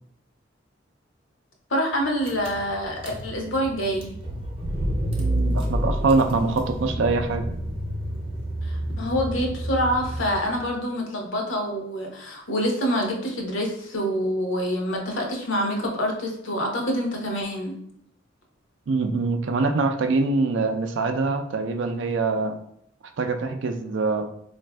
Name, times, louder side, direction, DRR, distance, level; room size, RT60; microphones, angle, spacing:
voice 1, 1.7-4.1 8.6-17.8, equal, 75° left, 1 dB, 0.7 m, -26 dB
Car / Engine, 1.9-2.0 2.2-10.6, right 1 dB, 30° right, 0.6 m, -29 dB
voice 2, 5.2-7.5 18.9-22.6 23.2-24.3, right 3 dB, 70° right, 7 dB, 0.4 m, -24 dB
4.0 x 2.5 x 2.2 m, 0.70 s
head